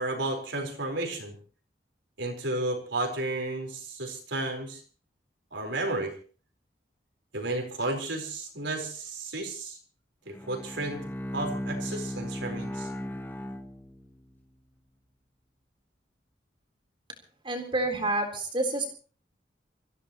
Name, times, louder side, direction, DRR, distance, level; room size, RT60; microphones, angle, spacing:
voice 1, 0.0-1.4 2.2-4.8 5.5-6.1 7.3-9.8 10.3-11.0 11.3-12.9, right 2 dB, 80° right, 2 dB, 4.6 m, -32 dB
Bowed string instrument, 10.3-14.4, equal, 10° left, 1.4 m, -36 dB
voice 2, 17.4-18.9, right 2 dB, 25° right, 3 dB, 3.9 m, -28 dB
26.0 x 15.5 x 3.1 m, 0.40 s
head